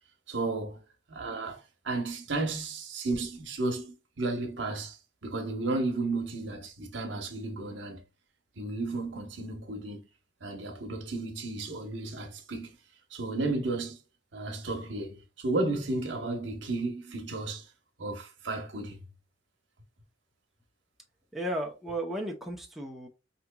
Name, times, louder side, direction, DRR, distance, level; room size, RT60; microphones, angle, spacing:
voice 1, 0.3-0.8 1.1-8.0 8.6-10.0 10.4-12.7 13.1-14.0 14.3-17.7 18.0-19.0, right 2 dB, 70° right, 1.0 m, -33 dB
voice 2, 21.3-23.1, right 1 dB, ahead, 0.6 m, -34 dB
4.8 x 2.9 x 2.2 m
head